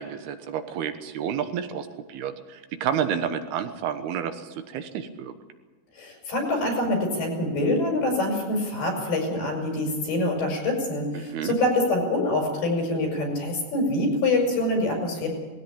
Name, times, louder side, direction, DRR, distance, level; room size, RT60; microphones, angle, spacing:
voice 1, 0.0-2.3 2.8-4.4 4.7-5.3 11.1-11.6, right 8 dB, 80° right, 8 dB, 3.3 m, -30 dB
voice 2, 6.0-15.3, left 2 dB, 80° left, 1 dB, 7.6 m, -25 dB
19.5 x 16.5 x 8.6 m, 1.3 s
omnidirectional pair, 4.4 m